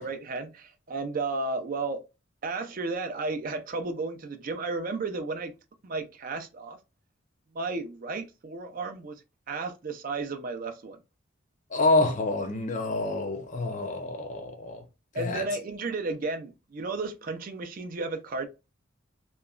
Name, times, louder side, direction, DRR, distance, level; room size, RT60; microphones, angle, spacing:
voice 1, 0.0-2.0 2.4-5.5 5.8-6.8 7.5-9.2 9.5-11.0 15.1-18.5, right 3 dB, 40° right, 0.4 m, -33 dB
voice 2, 11.7-14.8 15.1-15.5, left 2 dB, 35° left, 0.5 m, -27 dB
2.9 x 2.2 x 2.3 m
head